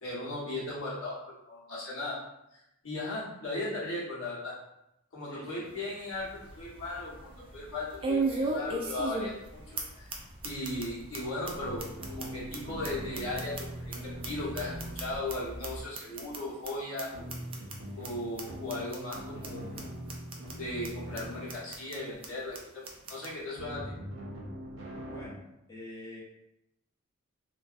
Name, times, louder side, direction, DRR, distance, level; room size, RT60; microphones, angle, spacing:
voice 1, 0.0-2.2 2.5-4.5 5.1-10.1 10.4-17.3 18.0-19.7 20.5-23.9, left 2 dB, 80° left, -7 dB, 1.0 m, -37 dB
voice 2, 5.2-6.0 10.1-10.2 25.1-25.4 25.7-26.2, equal, 15° left, -8 dB, 0.6 m, -46 dB
sound 1, 5.6-5.7 6.2-6.3 8.0-9.5 9.8-9.9 10.1-10.2 10.4-10.8 11.1-11.2 11.5-11.6 11.8-14.0 14.2-15.3 15.6-15.7 15.9-16.4 16.6-16.7 17.0-17.1 17.3-17.7 18.0-18.1 18.4-18.5 18.7-19.2 19.4-19.5 19.8-19.9 20.1-20.5 20.8-20.9 21.2-21.3 21.5-22.0 22.2-22.3 22.5-22.6 22.8-23.3, right 3 dB, 25° right, 0.3 m, -34 dB
sound 2, 6.1-15.8, equal, 5° right, 0.8 m, -49 dB
sound 3, 11.6-16.0 17.1-22.0 23.5-25.3, equal, 85° right, 0.6 m, -42 dB
2.6 x 2.2 x 2.4 m, 0.85 s
head